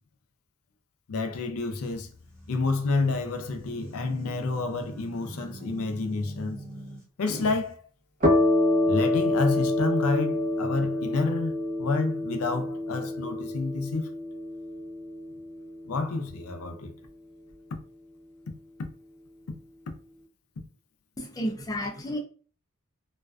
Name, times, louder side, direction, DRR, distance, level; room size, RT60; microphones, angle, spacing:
voice 1, 1.1-2.1 2.5-6.6 7.2-7.8 8.9-14.1 15.8-16.9, left 3 dB, 85° left, 0.5 m, -29 dB
sound 1, 1.9-7.7, right 1 dB, 15° right, 1.0 m, -42 dB
sound 2, 8.2-15.7, left 1 dB, 35° right, 0.7 m, -27 dB
voice 2, 21.2-22.2, equal, 15° left, 0.4 m, -31 dB
2.4 x 2.2 x 2.3 m
head